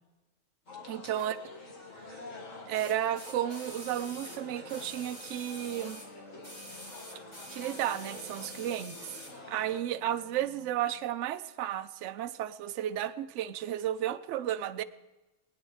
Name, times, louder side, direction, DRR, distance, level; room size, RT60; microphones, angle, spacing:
sound 1, 0.7-9.8, left 3 dB, 75° left, 2.2 m, -48 dB
voice 1, 0.9-1.4 2.1-2.2 2.7-6.0 7.5-9.0 9.5-14.8, right 11 dB, 70° right, 11 dB, 0.9 m, -33 dB
sound 2, 1.1-1.3 2.7-6.1 6.4-9.4 10.3-10.4, equal, 20° left, 2.2 m, -47 dB
sound 3, 3.1-11.1, equal, 15° right, 1.2 m, -55 dB
21.0 x 9.9 x 3.2 m, 1.1 s
omnidirectional pair, 1.4 m